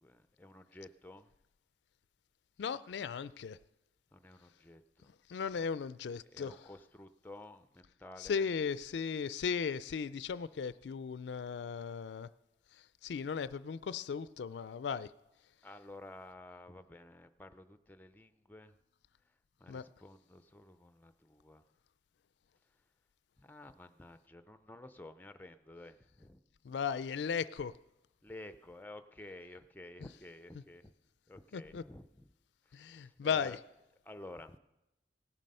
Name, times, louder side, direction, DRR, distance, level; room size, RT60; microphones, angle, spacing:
voice 1, 0.0-1.3 4.1-5.1 6.3-8.5 15.6-18.8 19.6-21.6 23.4-26.4 28.2-30.9 31.3-32.3 32.7-33.6 34.0-34.6, left 2 dB, 10° left, 0.4 m, -52 dB
voice 2, 2.6-3.6 5.3-6.6 8.2-12.3 13.0-15.1 19.7-19.8 26.6-27.7 31.5-31.8 32.7-33.6, left 6 dB, 75° left, 0.4 m, -36 dB
17.5 x 7.6 x 5.4 m
head